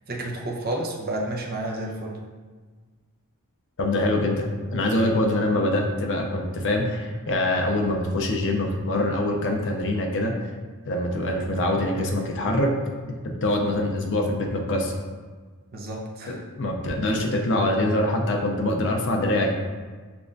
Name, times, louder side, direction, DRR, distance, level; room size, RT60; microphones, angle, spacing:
voice 1, 0.1-2.2 15.7-16.4, right 1 dB, 45° right, -1 dB, 0.7 m, -31 dB
voice 2, 3.8-10.3 10.9-12.7 13.2-14.9 16.3-19.6, left 1 dB, 60° left, 2 dB, 0.6 m, -24 dB
7.0 x 2.5 x 2.6 m, 1.4 s
head